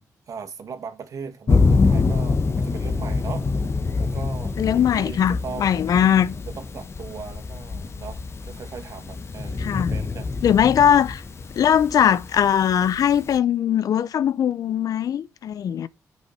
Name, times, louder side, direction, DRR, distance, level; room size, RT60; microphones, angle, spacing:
voice 1, 0.0-3.5 4.0-5.8 6.5-10.3, right 6 dB, 65° right, 2.1 m, -38 dB
Thunder, 1.5-13.4, left 4 dB, 45° left, 1.4 m, -25 dB
voice 2, 4.6-6.3 9.6-9.9 10.4-11.2 11.5-15.9, left 9 dB, 75° left, 0.6 m, -20 dB
8.9 x 6.3 x 5.6 m
cardioid pair, 80°, 6 cm